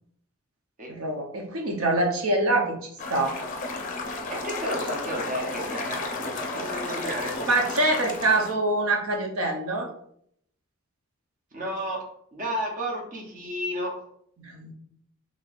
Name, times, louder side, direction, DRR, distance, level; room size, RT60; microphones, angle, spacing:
voice 1, 0.9-2.8 3.1-3.3 7.5-9.9 14.4-14.7, right 2 dB, 70° right, 2 dB, 0.8 m, -25 dB
sound 1, 3.0-8.5, left 2 dB, 35° left, 0.5 m, -33 dB
voice 2, 4.3-7.5 11.5-12.0 12.3-13.9, equal, 35° right, -1 dB, 0.9 m, -32 dB
4.4 x 3.1 x 2.4 m, 0.68 s
head